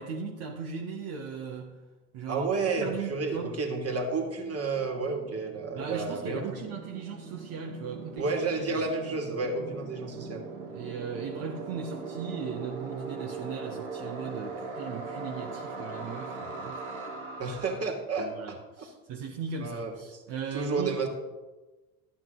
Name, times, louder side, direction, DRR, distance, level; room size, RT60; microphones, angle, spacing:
voice 1, 0.0-1.8 2.1-2.5 2.8-3.5 5.7-8.3 8.7-8.8 10.6-16.8 18.2-21.0, right 6 dB, 60° right, -1 dB, 1.5 m, -38 dB
voice 2, 2.3-6.6 8.2-10.5 17.4-18.6 19.6-20.2 20.5-21.1, right 3 dB, 35° right, 2 dB, 2.4 m, -31 dB
sound 1, 2.8-17.8, right 4 dB, 80° right, 1.9 m, -41 dB
12.5 x 9.0 x 3.9 m, 1.2 s
hypercardioid pair, 70°, 43 cm